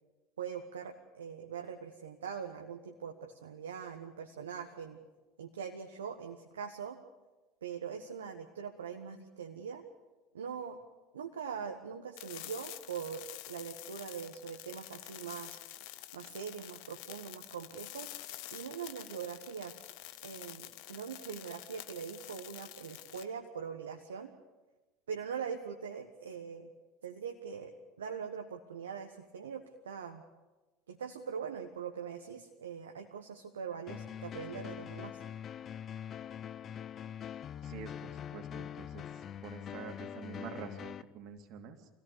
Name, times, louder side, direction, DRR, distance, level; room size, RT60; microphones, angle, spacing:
voice 1, 0.4-5.0 5.4-7.0 7.6-9.8 10.3-10.8 11.1-15.6 16.1-18.1 18.5-19.8 20.2-24.3 25.1-26.7 27.0-27.7 28.0-30.2 30.9-35.2, right 7 dB, 80° right, 4 dB, 1.3 m, -42 dB
sound 1, 12.2-23.2, left 16 dB, 60° left, 1.0 m, -48 dB
sound 2, 33.9-41.0, left 9 dB, 40° left, 0.7 m, -43 dB
voice 2, 37.6-39.0 39.4-41.9, right 6 dB, 55° right, 6 dB, 2.6 m, -47 dB
25.5 x 17.0 x 6.9 m, 1.2 s
figure-of-eight pair, 75°, 0 cm